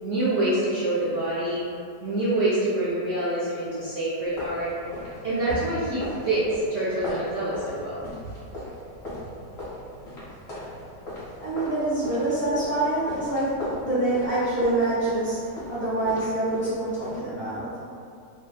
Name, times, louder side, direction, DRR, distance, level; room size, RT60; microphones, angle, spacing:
voice 1, 0.0-1.6 2.0-4.7 5.2-8.0, right 1 dB, 70° right, -10 dB, 0.6 m, -26 dB
sound 1, 4.2-17.2, left 1 dB, 45° left, 1.1 m, -38 dB
voice 2, 11.4-13.5 13.8-17.7, right 2 dB, 10° right, -12 dB, 0.5 m, -26 dB
2.7 x 2.6 x 2.3 m, 2.4 s
omnidirectional pair, 1.8 m